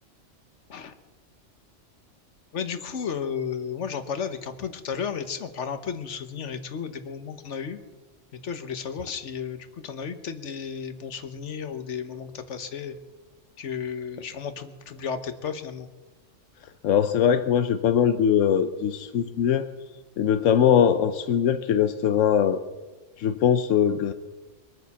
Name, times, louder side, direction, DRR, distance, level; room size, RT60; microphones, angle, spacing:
voice 1, 2.5-7.8 8.3-13.0 13.6-15.9, left 7 dB, 70° left, 9 dB, 1.4 m, -33 dB
voice 2, 16.8-19.7 20.2-22.6 23.2-24.1, left 8 dB, 90° left, 10 dB, 1.1 m, -21 dB
22.5 x 9.1 x 7.0 m, 1.2 s
omnidirectional pair, 1.3 m